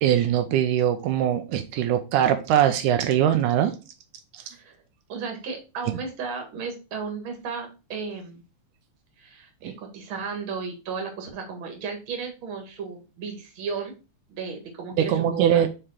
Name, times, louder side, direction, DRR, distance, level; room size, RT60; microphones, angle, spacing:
voice 1, 0.0-3.8 4.3-4.4 15.0-15.7, right 10 dB, 85° right, 7 dB, 2.3 m, -22 dB
voice 2, 5.1-8.4 9.2-13.9 14.3-15.6, right 5 dB, 50° right, 3 dB, 2.1 m, -34 dB
5.1 x 4.9 x 4.3 m, 0.30 s
omnidirectional pair, 3.5 m